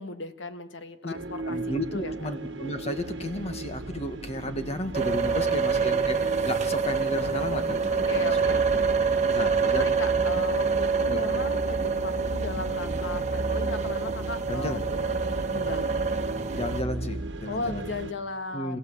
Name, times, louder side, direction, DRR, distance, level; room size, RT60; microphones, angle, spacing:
voice 1, 0.0-1.6 1.9-2.1 5.3-6.1 7.9-15.9 17.4-18.8, left 2 dB, 85° left, 9 dB, 1.5 m, -37 dB
sound 1, 1.1-18.1, right 1 dB, 70° right, 1.3 m, -37 dB
voice 2, 1.4-6.2 6.4-8.1 8.7-8.9 9.3-9.9 11.1-11.2 14.5-14.8 16.5-17.9 18.5-18.8, left 1 dB, 35° left, 7 dB, 1.8 m, -33 dB
sound 2, 4.9-16.8, right 5 dB, 40° right, 1.3 m, -26 dB
26.0 x 16.5 x 8.0 m, 0.93 s
head